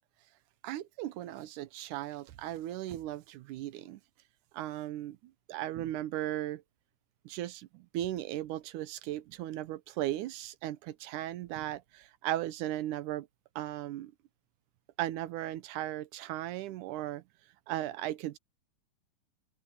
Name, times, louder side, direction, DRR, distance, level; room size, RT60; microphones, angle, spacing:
voice 1, 0.6-4.0 4.5-5.2 5.5-6.6 7.3-13.3 13.6-14.1 15.0-17.2 17.7-18.4, right 14 dB, 75° right, 2.2 m, -36 dB
open air
omnidirectional pair, 3.8 m